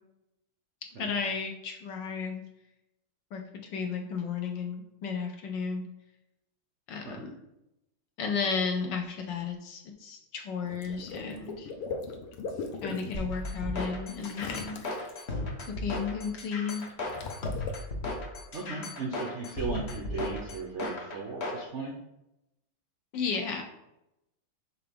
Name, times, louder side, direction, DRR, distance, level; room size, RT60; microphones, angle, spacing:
voice 1, 0.9-2.4 3.3-3.4 3.7-5.9 6.9-7.4 8.2-11.7 12.8-14.8 15.7-16.8 23.1-23.6, left 5 dB, 65° left, 3 dB, 1.3 m, -33 dB
Water / Liquid, 10.6-13.1 14.2-15.2 16.7-17.7, left 4 dB, 85° left, 1.7 m, -38 dB
sound 1, 13.1-21.6, left 2 dB, 45° left, 0.9 m, -35 dB
voice 2, 18.5-21.9, right 4 dB, 80° right, 0 dB, 0.6 m, -37 dB
5.8 x 3.7 x 5.1 m, 0.88 s
omnidirectional pair, 2.4 m